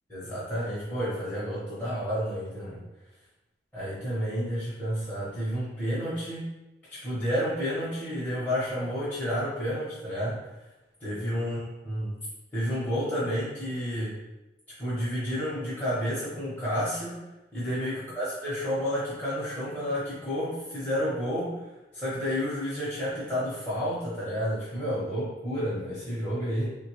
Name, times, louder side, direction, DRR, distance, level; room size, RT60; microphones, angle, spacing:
voice 1, 0.1-2.8 3.7-6.5 6.9-10.4 11.0-12.2 12.5-14.2 14.8-21.6 21.9-26.7, equal, 10° left, -12 dB, 0.8 m, -30 dB
3.3 x 2.2 x 3.0 m, 1.0 s
head